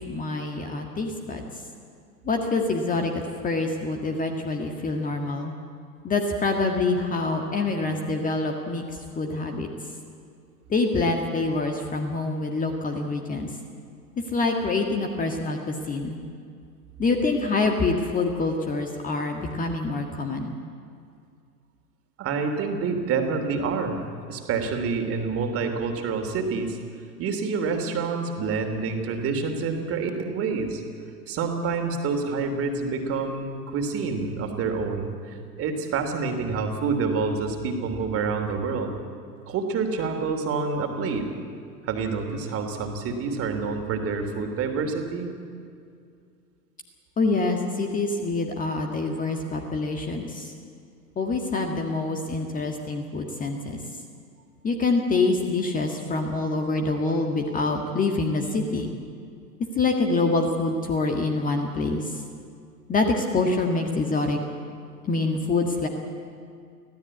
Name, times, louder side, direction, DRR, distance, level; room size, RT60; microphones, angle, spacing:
voice 1, 0.0-1.5 2.2-5.5 6.0-9.7 10.7-13.5 14.3-16.2 17.0-20.6 47.2-50.5 51.2-53.8 54.6-58.9 59.8-62.2 62.9-64.4 65.0-65.9, left 3 dB, 15° left, 3 dB, 1.7 m, -26 dB
voice 2, 22.2-24.0 24.3-26.8 27.2-30.8 31.3-39.0 39.5-41.3 41.8-45.3, right 4 dB, 30° right, 5 dB, 3.0 m, -27 dB
25.0 x 16.5 x 8.5 m, 2.3 s
figure-of-eight pair, 105°, 49 cm